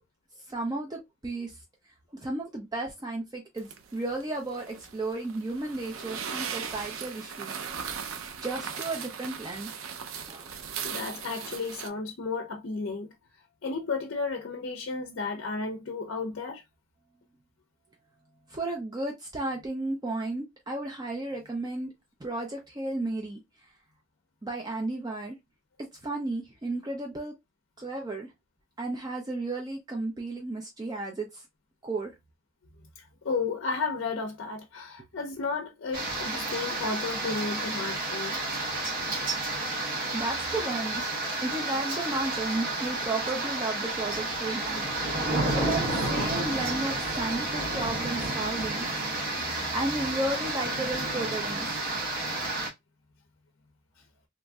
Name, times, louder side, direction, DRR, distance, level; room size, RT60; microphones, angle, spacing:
voice 1, 0.5-1.5 2.2-7.5 8.4-9.7 10.3-10.6 18.5-21.9 22.2-23.4 24.4-25.4 25.8-27.3 27.8-28.3 28.8-31.4 31.8-32.1 37.5-37.6 40.1-41.0 41.4-44.9 45.6-48.9 49.7-51.9, right 2 dB, 20° right, 0.5 m, -33 dB
sound 1, 3.6-11.9, right 7 dB, 70° right, 0.5 m, -38 dB
voice 2, 10.5-13.1 13.6-16.6 33.0-38.4, left 4 dB, 60° left, 0.5 m, -33 dB
sound 2, 35.9-52.7, right 2 dB, 45° right, 1.4 m, -31 dB
3.0 x 2.6 x 2.2 m
head